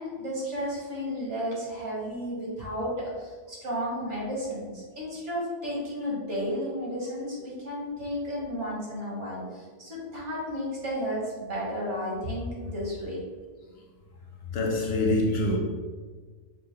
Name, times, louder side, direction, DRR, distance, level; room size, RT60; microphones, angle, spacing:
voice 1, 0.0-13.2, equal, 65° right, 1.8 m, -33 dB
voice 2, 14.5-15.6, left 2 dB, 60° left, 0.8 m, -25 dB
6.0 x 2.1 x 3.5 m
omnidirectional pair, 1.3 m